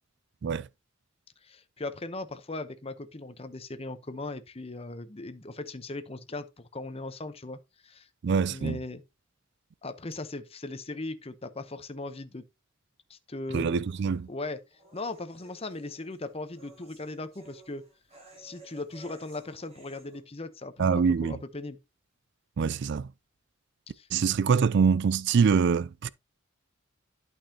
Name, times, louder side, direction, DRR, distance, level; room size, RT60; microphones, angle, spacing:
voice 1, 1.4-7.6 7.8-8.1 8.5-9.0 9.8-12.4 13.1-13.9 14.3-14.6 14.9-17.8 18.4-21.8 23.9-24.1, left 2 dB, 30° left, 0.9 m, -38 dB
voice 2, 8.2-8.8 13.5-14.3 20.8-21.4 22.6-23.1 24.1-26.1, right 6 dB, 55° right, 0.4 m, -24 dB
sound 1, 13.8-20.2, right 2 dB, 30° right, 4.8 m, -55 dB
11.5 x 5.5 x 2.8 m
head